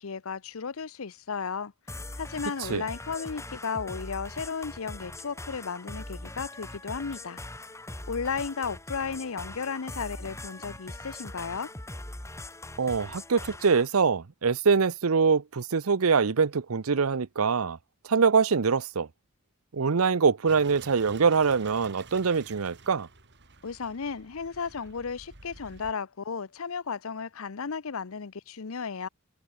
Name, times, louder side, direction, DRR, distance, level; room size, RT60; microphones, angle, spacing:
voice 1, 0.0-7.4 8.1-11.7 23.6-29.1, left 5 dB, 80° left, 0.7 m, -34 dB
sound 1, 1.9-13.9, left 2 dB, 15° left, 1.7 m, -41 dB
voice 2, 12.8-17.8 18.1-19.1 19.7-23.1, right 5 dB, 90° right, 0.7 m, -24 dB
sound 2, 20.5-25.9, right 4 dB, 55° right, 3.5 m, -50 dB
head